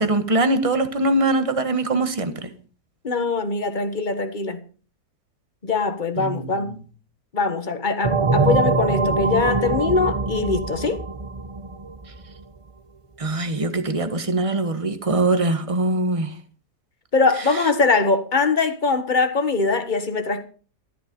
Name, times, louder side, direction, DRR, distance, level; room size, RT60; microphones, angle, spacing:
voice 1, 0.0-2.5 6.2-6.6 13.2-16.3, right 2 dB, 20° right, 1.3 m, -22 dB
voice 2, 3.0-4.6 5.6-6.8 7.3-11.0 17.1-20.4, left 4 dB, 30° left, 1.5 m, -22 dB
sound 1, 8.0-12.4, right 3 dB, 45° right, 0.4 m, -23 dB
13.5 x 12.0 x 5.3 m
omnidirectional pair, 1.7 m